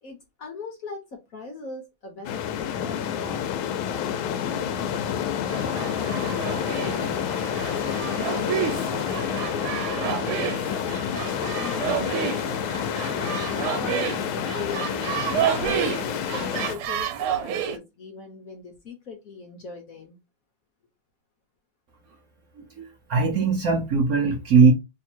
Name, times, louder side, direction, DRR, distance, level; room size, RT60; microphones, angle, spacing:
voice 1, 0.0-3.5 3.9-7.0 7.6-8.7 8.9-13.2 13.7-20.2, left 5 dB, 55° left, 1.0 m, -40 dB
sound 1, 2.2-16.8, left 9 dB, 80° left, 1.4 m, -29 dB
sound 2, 5.5-17.8, right 9 dB, 85° right, 1.6 m, -30 dB
voice 2, 22.6-24.7, right 4 dB, 70° right, 0.8 m, -20 dB
3.2 x 2.8 x 4.3 m
omnidirectional pair, 2.3 m